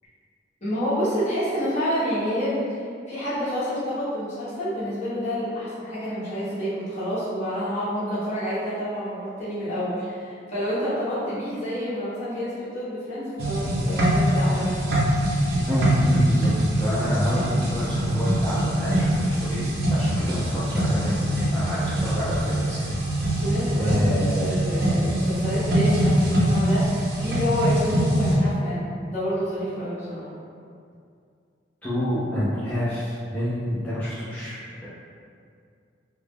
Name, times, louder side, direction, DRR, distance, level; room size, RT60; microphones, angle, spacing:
voice 1, 0.6-2.6 3.1-14.8 23.3-24.0 24.4-30.3, equal, 40° left, -11 dB, 0.9 m, -28 dB
sound 1, 13.4-28.3, right 1 dB, 50° right, 0.5 m, -23 dB
voice 2, 15.7-22.8 23.7-24.5 31.8-34.9, equal, 10° left, -12 dB, 0.3 m, -28 dB
2.1 x 2.0 x 3.2 m, 2.3 s
head